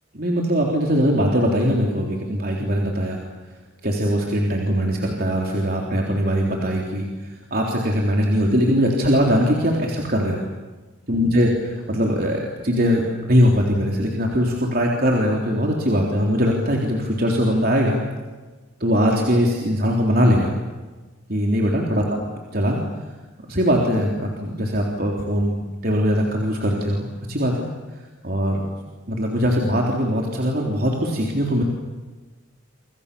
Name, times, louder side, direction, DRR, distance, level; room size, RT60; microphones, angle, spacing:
voice 1, 0.1-3.2 3.8-10.4 11.1-11.5 11.9-18.0 18.8-20.5 21.3-22.2 22.5-22.8 23.5-27.7 28.2-28.6 29.1-31.6, equal, 45° right, 0 dB, 3.8 m, -21 dB
30.0 x 27.0 x 7.1 m, 1.3 s
head